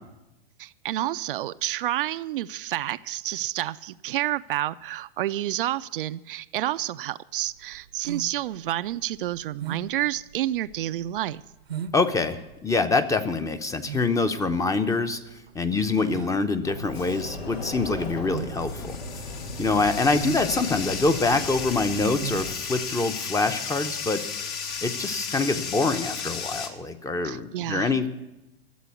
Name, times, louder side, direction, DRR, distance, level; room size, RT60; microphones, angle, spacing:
voice 1, 0.6-11.4 27.2-27.9, right 14 dB, 60° right, 13 dB, 0.5 m, -29 dB
sound 1, 7.4-23.8, right 7 dB, 80° right, 0.9 m, -40 dB
voice 2, 11.9-15.2 15.5-19.0 19.6-28.1, left 3 dB, 10° left, 10 dB, 0.8 m, -25 dB
Sliding door, 16.6-22.5, left 2 dB, 85° left, 1.5 m, -37 dB
Bathtub (filling or washing), 17.5-26.7, left 6 dB, 55° left, 1.8 m, -34 dB
12.5 x 7.5 x 9.4 m, 0.99 s
hypercardioid pair, 100°, 30 cm